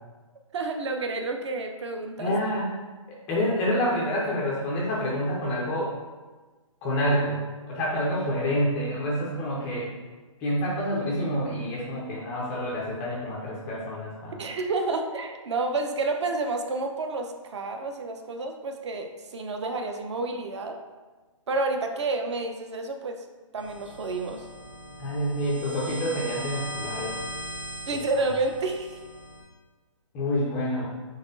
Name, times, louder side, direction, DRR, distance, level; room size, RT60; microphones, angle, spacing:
voice 1, 0.5-2.4 14.4-20.8 21.5-23.2 23.5-24.4 27.9-29.0, right 3 dB, 55° right, 4 dB, 0.6 m, -30 dB
voice 2, 2.2-2.7 3.3-5.9 6.8-7.4 7.7-9.9 10.4-14.4 25.0-27.2 30.1-30.9, equal, 10° left, -4 dB, 0.3 m, -27 dB
sound 1, 23.6-29.4, equal, 35° right, 1.0 m, -39 dB
4.1 x 3.1 x 3.8 m, 1.3 s
hypercardioid pair, 155°, 17 cm